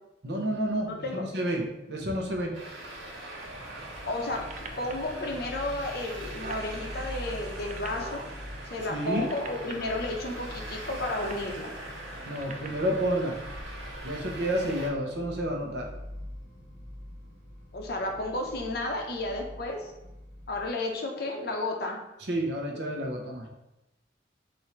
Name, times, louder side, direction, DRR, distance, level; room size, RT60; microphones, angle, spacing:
voice 1, 0.2-2.5 8.9-9.3 12.2-13.4 14.0-15.9 22.3-23.5, equal, 65° right, 0 dB, 0.9 m, -30 dB
voice 2, 0.8-1.2 4.1-4.4 4.8-8.2 8.7-11.7 17.7-19.9 20.5-22.0, left 2 dB, 60° left, 2 dB, 0.8 m, -32 dB
Traffic noise roadway noise, 2.5-14.9, right 1 dB, 90° right, 1.3 m, -42 dB
sound 1, 3.4-20.7, left 1 dB, 5° right, 1.5 m, -44 dB
sound 2, 4.3-5.1 5.7-5.8 6.1-6.7 7.3-8.2 9.0-9.7 11.0-11.4 12.2-13.0 13.8-13.9, right 4 dB, 45° right, 0.4 m, -43 dB
4.3 x 2.7 x 4.5 m, 0.93 s
head